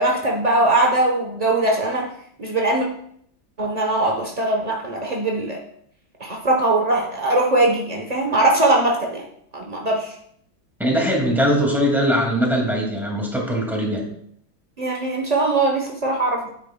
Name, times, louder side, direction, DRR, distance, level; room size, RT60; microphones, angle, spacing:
voice 1, 0.0-2.1 2.4-2.9 3.6-5.6 6.2-9.2 9.5-10.1 14.8-16.5, right 2 dB, 55° right, 0 dB, 0.4 m, -21 dB
voice 2, 10.8-14.1, equal, ahead, -1 dB, 1.9 m, -21 dB
9.4 x 8.6 x 2.2 m, 0.67 s
omnidirectional pair, 2.2 m